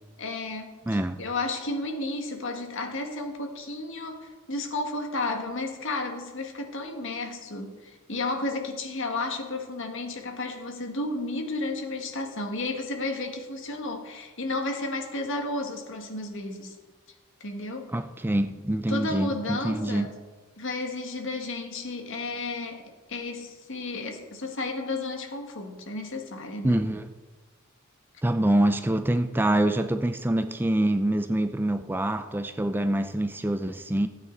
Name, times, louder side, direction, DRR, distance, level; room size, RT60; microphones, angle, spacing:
voice 1, 0.2-16.8 17.4-17.9 18.9-20.1 20.6-26.8, left 2 dB, 65° left, 1.8 m, -33 dB
voice 2, 0.9-1.2 17.9-20.1 26.6-27.1 28.2-34.1, right 1 dB, 10° right, 0.4 m, -25 dB
16.0 x 9.1 x 4.0 m
head